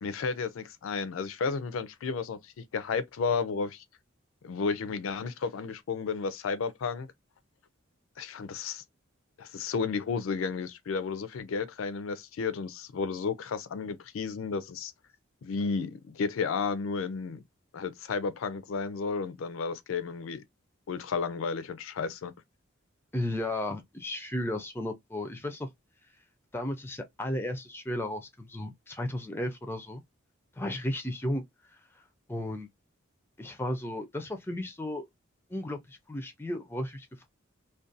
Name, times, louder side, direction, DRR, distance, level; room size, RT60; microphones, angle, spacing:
voice 1, 0.0-3.8 4.4-7.1 8.2-8.8 9.4-14.9 15.4-17.4 17.7-20.4 20.9-22.3, left 5 dB, 80° left, 0.4 m, -32 dB
voice 2, 23.1-25.7 26.5-30.0 30.6-31.4 32.3-32.7 33.4-35.1 35.5-37.3, left 1 dB, 10° left, 0.4 m, -34 dB
2.4 x 2.2 x 2.4 m
head